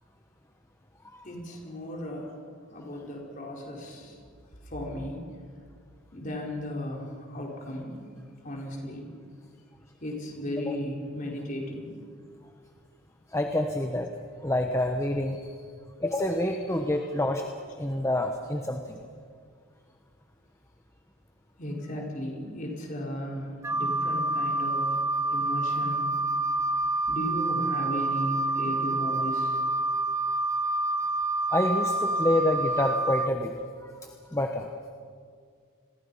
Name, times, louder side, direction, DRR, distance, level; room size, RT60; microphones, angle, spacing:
voice 1, 1.2-2.4 2.7-4.2 4.6-5.3 6.1-7.9 8.4-9.0 10.0-11.9 21.6-25.0 25.3-26.1 27.1-29.6, left 1 dB, 40° left, -1 dB, 4.8 m, -35 dB
voice 2, 13.3-14.1 14.4-15.6 16.0-17.4 17.8-19.0 31.5-33.6 33.8-33.9 34.3-34.7, left 1 dB, 15° left, 3 dB, 1.0 m, -27 dB
Wind instrument woodwind instrument, 23.6-33.3, right 2 dB, 15° right, 0.7 m, -28 dB
29.0 x 22.0 x 5.6 m, 2.1 s
head